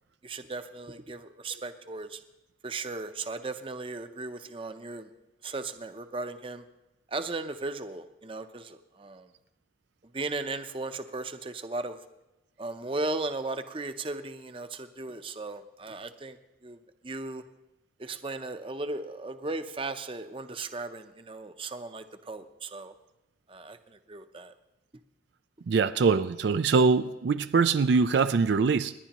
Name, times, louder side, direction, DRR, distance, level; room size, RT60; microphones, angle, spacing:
voice 1, 0.2-2.2 2.6-5.1 5.4-6.6 7.1-9.3 10.1-12.0 12.6-16.4 16.6-16.8 17.0-17.4 18.0-22.9 23.5-23.8 24.1-24.5, right 3 dB, 30° right, 0.6 m, -36 dB
voice 2, 25.7-28.9, right 5 dB, 70° right, 0.4 m, -23 dB
28.0 x 11.0 x 3.0 m
head